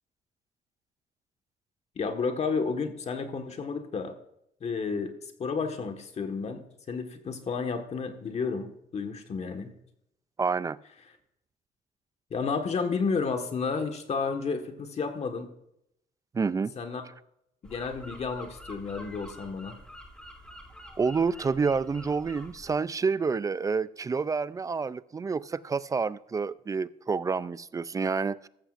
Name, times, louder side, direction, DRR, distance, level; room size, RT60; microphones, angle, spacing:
voice 1, 2.0-4.2 4.6-5.1 5.4-9.7 12.3-15.5 16.8-17.0 17.6-19.8, left 5 dB, 40° left, 6 dB, 1.5 m, -31 dB
voice 2, 10.4-10.8 16.3-16.7 21.0-28.5, right 5 dB, 20° right, 18 dB, 0.3 m, -28 dB
sound 1, 17.6-22.8, equal, 5° left, 2.2 m, -47 dB
14.0 x 14.0 x 2.5 m, 0.77 s
cardioid pair, 110°, 17 cm